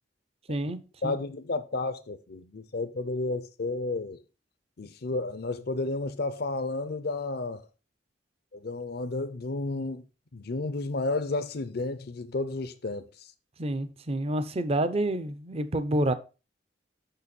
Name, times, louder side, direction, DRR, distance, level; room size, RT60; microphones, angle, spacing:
voice 1, 0.5-1.2 13.6-16.1, right 1 dB, 35° right, 0.6 m, -28 dB
voice 2, 1.0-4.2 4.8-7.6 8.5-10.0 10.3-13.1, left 2 dB, 60° left, 0.6 m, -32 dB
6.8 x 5.8 x 4.1 m
head